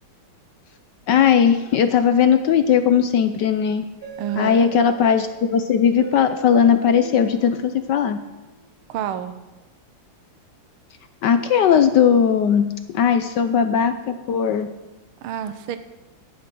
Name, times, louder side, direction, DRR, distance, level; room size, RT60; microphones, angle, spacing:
voice 1, 1.1-3.8 4.4-8.2 11.2-12.7 12.9-14.7, left 8 dB, 70° left, 9 dB, 1.1 m, -18 dB
sound 1, 4.0-8.7, right 3 dB, 40° right, 3.6 m, -40 dB
voice 2, 4.2-4.7 8.9-9.4 15.2-15.8, right 10 dB, 80° right, 10 dB, 1.7 m, -28 dB
13.0 x 10.0 x 6.1 m, 1.1 s
omnidirectional pair, 2.4 m